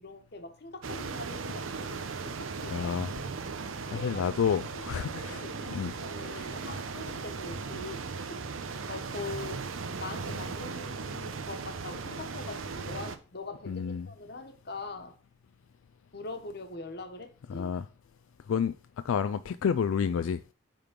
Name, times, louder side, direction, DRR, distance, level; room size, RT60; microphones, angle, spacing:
voice 1, 0.0-3.0 3.9-4.4 4.7-8.0 8.3-8.4 8.8-9.6 10.0-15.2 16.1-17.7, left 3 dB, 55° left, 1.2 m, -43 dB
sound 1, 0.8-13.2, right 4 dB, 80° right, 0.7 m, -37 dB
voice 2, 2.7-3.1 3.9-5.4 5.7-5.9 13.7-14.1 17.5-17.9 18.5-18.7 19.0-20.4, left 7 dB, 85° left, 0.3 m, -29 dB
9.0 x 3.8 x 5.2 m
head